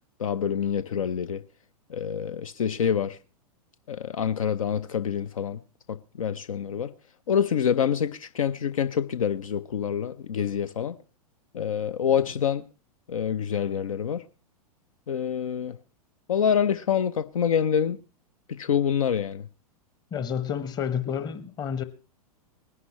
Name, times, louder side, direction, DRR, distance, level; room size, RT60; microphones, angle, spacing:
voice 1, 0.2-1.4 1.9-3.2 3.9-5.6 5.9-6.9 7.3-11.0 11.5-12.6 13.1-14.2 15.1-15.8 16.3-18.0 18.5-19.5, left 8 dB, 60° left, 0.6 m, -26 dB
voice 2, 20.1-21.8, left 8 dB, 20° left, 1.0 m, -30 dB
20.5 x 11.0 x 3.0 m
figure-of-eight pair, 100°, 20 cm